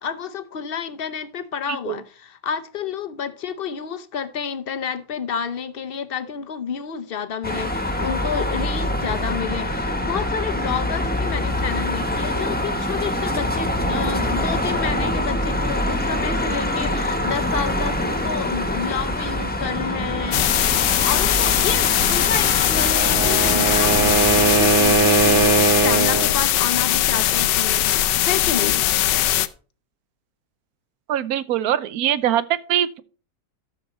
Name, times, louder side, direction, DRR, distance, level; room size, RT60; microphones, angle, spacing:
voice 1, 0.0-20.7 21.0-28.8, left 7 dB, 60° left, 0.5 m, -30 dB
sound 1, 7.4-24.6, left 1 dB, 5° left, 0.9 m, -25 dB
sound 2, 20.3-29.5, left 13 dB, 85° left, 1.3 m, -20 dB
Wind instrument woodwind instrument, 22.8-26.4, right 5 dB, 35° right, 1.4 m, -20 dB
voice 2, 31.1-33.0, right 10 dB, 65° right, 1.1 m, -22 dB
12.5 x 6.8 x 4.2 m
omnidirectional pair, 1.9 m